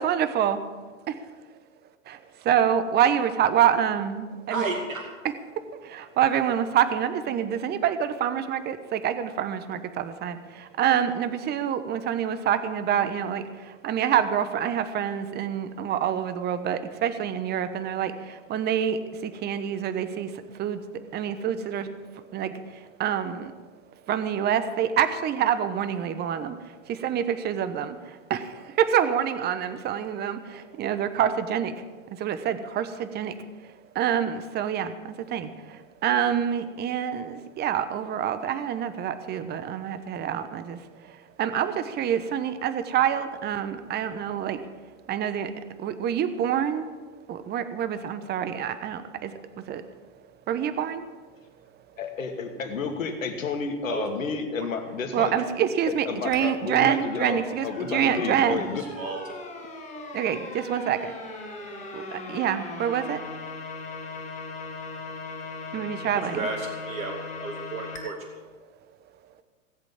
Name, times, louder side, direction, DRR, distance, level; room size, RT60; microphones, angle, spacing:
voice 1, 0.0-0.6 2.1-4.6 5.6-21.9 22.1-23.5 24.1-26.6 26.9-31.8 32.2-33.4 33.9-40.8 41.1-44.6 45.1-45.5 45.8-46.9 47.3-49.8 50.5-51.1 55.1-58.7 60.1-61.1 61.9-63.2 65.7-66.5, right 9 dB, 25° right, 11 dB, 1.1 m, -27 dB
voice 2, 4.5-5.1 53.9-54.1 54.6-54.8 58.8-59.2 66.2-68.4, right 3 dB, 80° right, 2 dB, 2.6 m, -33 dB
voice 3, 52.0-55.4 55.9-58.8, left 5 dB, 75° left, 5 dB, 2.4 m, -31 dB
sound 1, 56.3-68.0, left 3 dB, 20° left, 6.2 m, -39 dB
18.0 x 8.1 x 7.5 m, 1.3 s
hypercardioid pair, 110°, 40 cm